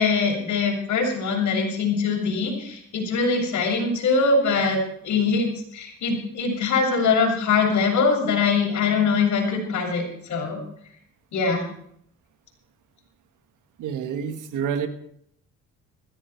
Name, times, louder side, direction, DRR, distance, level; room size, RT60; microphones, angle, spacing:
voice 1, 0.0-4.8 5.0-10.6 11.3-11.6, left 4 dB, 70° left, -1 dB, 7.2 m, -22 dB
voice 2, 13.8-14.9, right 7 dB, 85° right, 8 dB, 1.7 m, -28 dB
16.5 x 15.5 x 4.6 m, 0.68 s
cardioid pair, 90°, 30 cm